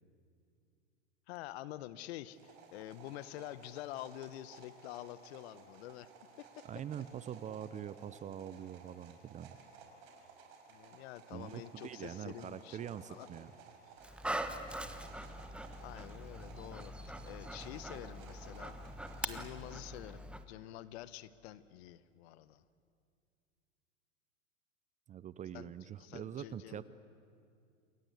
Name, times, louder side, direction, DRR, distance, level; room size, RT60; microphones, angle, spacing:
voice 1, 1.3-6.1 6.4-6.6 10.7-13.3 15.8-18.8 19.2-22.6 25.5-25.7 26.0-26.8, left 14 dB, 55° left, 16 dB, 1.1 m, -48 dB
sound 1, 2.3-19.5, right 5 dB, 55° right, 5.5 m, -57 dB
voice 2, 6.6-9.6 11.3-13.5 25.1-26.8, right 9 dB, 20° right, 16 dB, 0.6 m, -44 dB
Dog, 14.0-20.4, right 1 dB, 5° right, 1.2 m, -43 dB
28.0 x 22.5 x 8.2 m, 2.4 s
hypercardioid pair, 105°, 38 cm